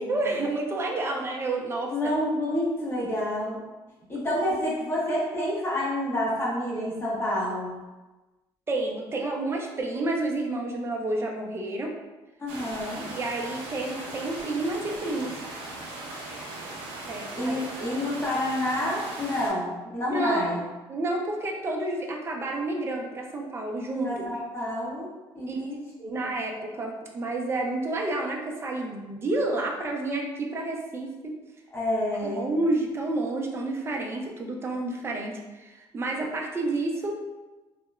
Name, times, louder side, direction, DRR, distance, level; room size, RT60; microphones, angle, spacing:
voice 1, 0.0-2.1 3.1-3.2 8.7-11.9 13.1-15.4 17.0-17.6 20.1-20.6 20.9-24.1 25.5-25.6 26.0-31.3 32.2-37.1, right 2 dB, 25° right, 0 dB, 0.4 m, -30 dB
voice 2, 1.9-3.6 4.1-7.8 12.4-13.0 17.3-20.6 24.0-25.1 25.3-26.1 31.7-32.5, left 1 dB, 25° left, -7 dB, 1.1 m, -28 dB
sound 1, 12.5-19.5, right 2 dB, 85° right, 0.6 m, -39 dB
2.8 x 2.1 x 2.3 m, 1.2 s
cardioid pair, 110°, 10 cm